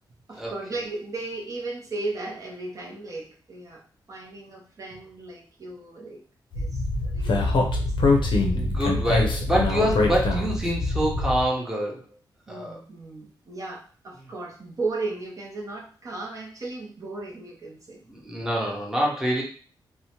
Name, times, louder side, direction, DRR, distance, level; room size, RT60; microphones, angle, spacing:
voice 1, 0.3-3.8 4.1-6.2 6.5-8.1 12.5-18.0, right 3 dB, 40° right, -2 dB, 0.6 m, -36 dB
Speech, 6.5-11.5, left 2 dB, 70° left, 0.6 m, -24 dB
voice 2, 8.5-12.0 12.5-12.8 18.1-19.4, equal, 5° right, -2 dB, 0.7 m, -26 dB
2.7 x 2.1 x 2.9 m, 0.41 s
wide cardioid pair, 110°, 8 cm